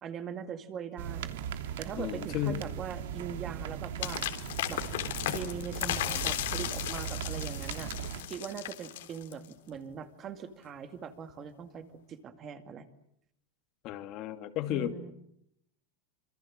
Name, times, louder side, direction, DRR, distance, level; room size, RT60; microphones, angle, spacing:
voice 1, 0.0-4.2 4.7-4.8 5.2-7.9 8.3-12.9 14.7-15.1, right 7 dB, 25° right, 9 dB, 2.1 m, -41 dB
sound 1, 1.0-8.2, right 9 dB, 75° right, 3.1 m, -38 dB
voice 2, 2.0-2.6 13.8-15.0, left 12 dB, 35° left, 7 dB, 2.5 m, -33 dB
sound 2, 4.0-9.5, left 13 dB, 80° left, 3.7 m, -35 dB
27.0 x 27.0 x 7.6 m, 0.75 s
supercardioid pair, 170°, 0 cm